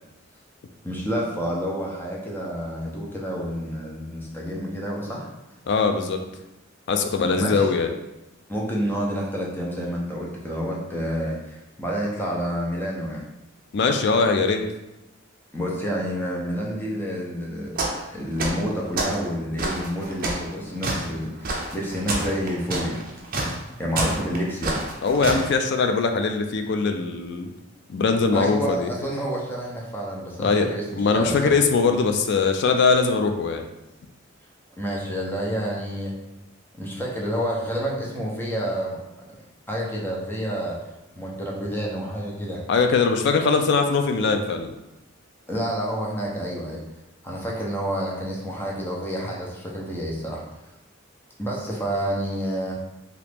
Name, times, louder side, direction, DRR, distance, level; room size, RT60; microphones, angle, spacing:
voice 1, 0.8-5.3 7.3-7.7 8.5-13.2 15.5-17.8 18.1-23.0 23.8-24.8 28.3-31.5 34.8-36.1 36.8-39.3 39.7-40.8 41.2-42.6 45.5-46.8 47.2-50.4 51.4-52.7, equal, 10° left, -3 dB, 0.6 m, -29 dB
voice 2, 5.7-6.2 6.9-7.9 13.7-14.6 25.0-27.5 27.9-28.9 30.4-30.7 31.0-33.7 42.7-44.7, left 4 dB, 60° left, 5 dB, 0.3 m, -21 dB
sound 1, 17.8-18.1 18.4-19.2 19.6-25.5, right 2 dB, 45° right, 0.6 m, -28 dB
2.9 x 2.4 x 3.4 m, 0.96 s
head